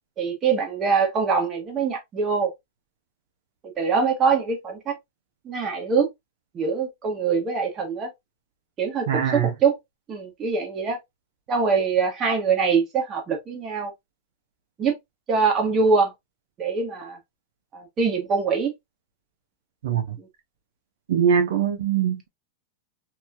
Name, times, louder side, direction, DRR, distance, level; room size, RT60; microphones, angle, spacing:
voice 1, 0.2-2.5 3.8-5.0 5.4-6.1 6.5-8.1 8.8-9.8 10.1-11.0 11.5-13.9 14.8-14.9 15.3-16.1 16.6-17.2 17.7-18.7 20.2-20.3, right 5 dB, 30° right, 1.2 m, -23 dB
voice 2, 9.1-9.5 19.8-20.2 21.1-22.3, right 8 dB, 75° right, 0.6 m, -22 dB
2.9 x 2.7 x 2.2 m
hypercardioid pair, 125°, 0 cm